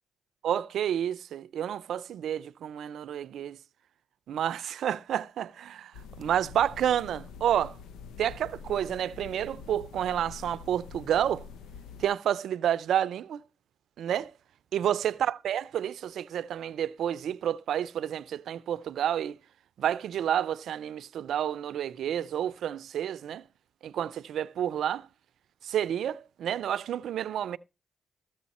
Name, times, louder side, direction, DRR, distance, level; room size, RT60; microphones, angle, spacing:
voice 1, 0.4-3.6 4.3-7.8 8.2-11.5 12.0-13.4 14.0-14.3 14.7-19.4 19.8-23.4 23.8-25.1 25.6-27.6, right 10 dB, 80° right, 0.5 m, -30 dB
sound 1, 5.9-12.1, left 6 dB, 90° left, 0.7 m, -46 dB
14.5 x 7.7 x 4.2 m
supercardioid pair, 55°, 0 cm